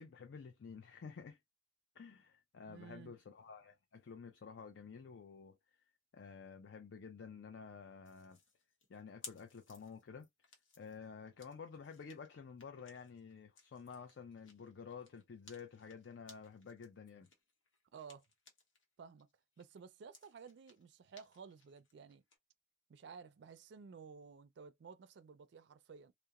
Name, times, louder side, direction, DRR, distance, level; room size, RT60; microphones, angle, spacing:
voice 1, 0.0-1.4 2.0-5.6 6.1-8.4 8.9-10.3 10.8-17.3, left 5 dB, 65° left, 0.4 m, -51 dB
voice 2, 2.6-3.1 17.9-18.2 19.0-19.3 19.6-22.2 22.9-26.1, right 6 dB, 60° right, 0.3 m, -54 dB
sound 1, 8.0-18.8 19.2-22.4, left 4 dB, 85° left, 0.9 m, -61 dB
2.8 x 2.0 x 2.3 m
head